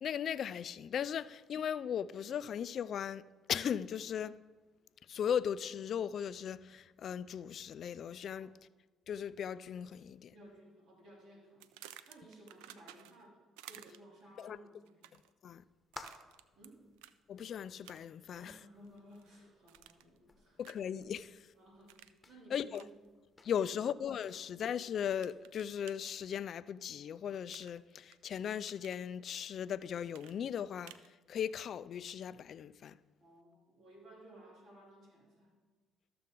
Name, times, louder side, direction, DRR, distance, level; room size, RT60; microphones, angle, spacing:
voice 1, 0.0-3.2 3.5-4.4 5.1-8.5 9.1-10.3 14.4-14.6 15.4-15.6 17.3-18.6 20.6-21.4 22.5-22.8 23.4-30.9 31.3-33.0, left 8 dB, 60° left, 0.3 m, -37 dB
voice 2, 10.3-11.8 12.1-15.1 16.5-16.8 18.3-20.6 21.5-22.0 22.3-22.9 23.6-23.9 33.2-35.6, right 1 dB, 70° right, 3.1 m, -57 dB
sound 1, 11.6-13.3 13.6-14.2 14.9-15.3 15.9-16.7 17.0-17.2 17.8-18.2 18.6-19.3 19.7-20.2 20.6-20.9 21.9-22.2 22.7-22.9 24.2-24.7 25.2-26.0 27.5-28.2 28.5-29.0 30.1-31.1, right 13 dB, 90° right, 0.3 m, -55 dB
sound 2, 15.5-25.6, left 3 dB, 25° left, 1.1 m, -59 dB
13.0 x 6.7 x 3.8 m
supercardioid pair, 65°, 0 cm